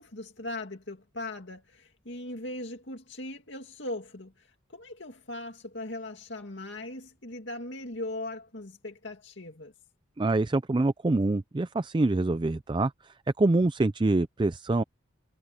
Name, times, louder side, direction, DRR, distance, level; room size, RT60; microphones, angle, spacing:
voice 1, 0.0-9.7, left 1 dB, 60° left, 2.5 m, -39 dB
voice 2, 10.2-14.8, right 2 dB, 25° right, 0.4 m, -25 dB
head